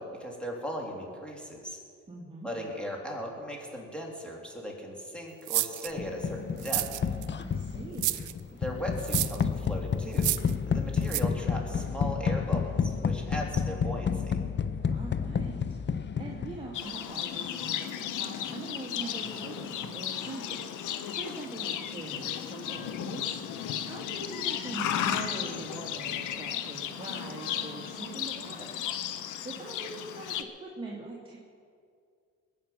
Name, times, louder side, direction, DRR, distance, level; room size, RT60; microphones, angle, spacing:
voice 1, 0.0-1.8 2.4-6.8 8.5-10.3 10.6-14.4 23.7-23.9, equal, 5° left, -1 dB, 3.5 m, -38 dB
voice 2, 2.1-2.5 7.4-8.4 14.9-15.6 15.9-23.4 23.8-29.1 29.4-31.4, right 2 dB, 15° right, -5 dB, 2.3 m, -43 dB
sound 1, 5.5-5.9 6.6-7.3 8.0-8.3 9.0-9.4 10.1-10.5 11.1-11.2, right 16 dB, 80° right, 0.6 m, -29 dB
sound 2, 6.0-16.9, left 6 dB, 35° left, 0.7 m, -30 dB
Livestock farm animals working animals, 16.7-30.4, left 10 dB, 90° left, 0.9 m, -35 dB
21.0 x 8.9 x 5.9 m, 2.2 s
cardioid pair, 90°, 30 cm